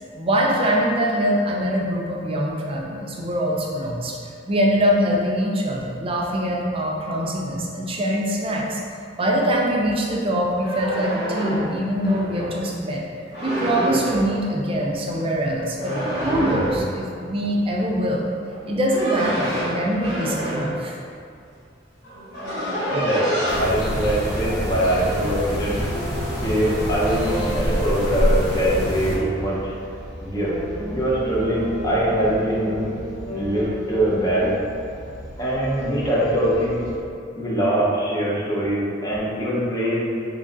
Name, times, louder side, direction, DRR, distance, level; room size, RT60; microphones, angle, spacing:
voice 1, 0.2-4.2 4.5-8.8 9.2-13.0 13.4-15.9 16.2-18.3 18.7-20.9, equal, 30° right, -2 dB, 0.4 m, -23 dB
sound 1, 10.5-12.6 13.3-14.4 15.8-17.0 18.5-20.8 21.7-21.8 22.0-23.6, equal, 60° left, 1.4 m, -27 dB
voice 2, 22.9-25.8 26.4-29.7 30.2-30.6 30.9-32.9 33.3-34.6 35.4-36.8 37.4-40.1, right 1 dB, 20° left, -6 dB, 0.7 m, -23 dB
sound 2, 23.5-29.2, equal, 85° left, 0.9 m, -26 dB
sound 3, 23.8-37.0, equal, 40° left, 1.0 m, -33 dB
3.1 x 2.4 x 3.8 m, 2.4 s
head